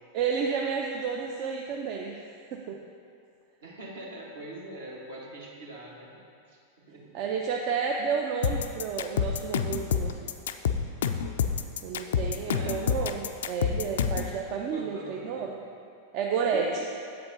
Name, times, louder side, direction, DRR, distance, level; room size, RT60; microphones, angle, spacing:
voice 1, 0.1-2.2 2.5-2.8 7.1-10.1 11.8-15.6 16.1-16.8, right 6 dB, 45° right, 1 dB, 0.4 m, -31 dB
voice 2, 3.6-6.2 6.5-7.3 12.4-12.9 14.7-15.5 16.5-16.8, right 2 dB, 60° right, -2 dB, 1.3 m, -43 dB
sound 1, 8.4-14.3, left 7 dB, 60° left, 0.3 m, -27 dB
7.7 x 7.7 x 2.7 m, 2.4 s
figure-of-eight pair, 90°, 0 cm